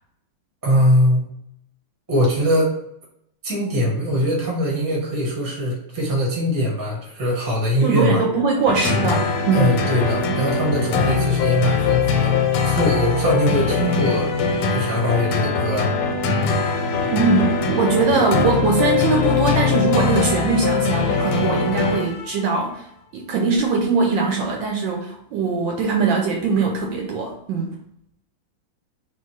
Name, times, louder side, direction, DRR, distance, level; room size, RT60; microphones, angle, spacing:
voice 1, 0.6-1.3 2.1-2.7 3.4-8.2 9.5-12.3 12.6-14.3 14.7-15.9, equal, 15° right, -3 dB, 0.7 m, -21 dB
voice 2, 7.8-9.7 17.1-22.9 23.1-27.8, right 4 dB, 70° right, 1 dB, 1.2 m, -21 dB
sound 1, 8.7-22.4, left 5 dB, 90° left, 1.5 m, -22 dB
3.6 x 2.6 x 4.6 m, 0.74 s
omnidirectional pair, 2.4 m